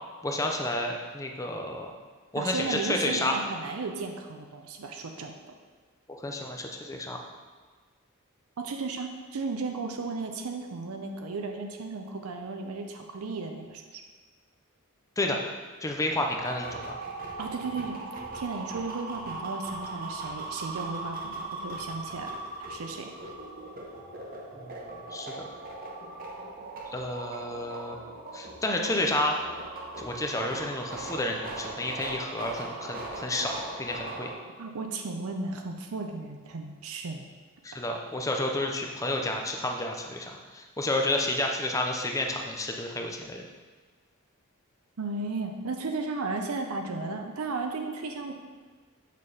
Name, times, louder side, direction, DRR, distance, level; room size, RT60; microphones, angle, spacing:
voice 1, 0.2-1.9 2.3-3.4 6.1-7.2 15.2-15.4 15.8-17.0 24.5-25.5 26.9-29.4 30.0-34.3 37.6-43.4, left 1 dB, 15° left, 2 dB, 0.5 m, -31 dB
voice 2, 2.4-5.3 8.6-14.0 17.4-18.0 18.3-23.3 34.6-37.2 45.0-48.3, right 3 dB, 75° right, 4 dB, 0.6 m, -35 dB
sound 1, 16.3-34.4, right 2 dB, 40° right, 0.9 m, -39 dB
6.6 x 5.4 x 3.3 m, 1.4 s
head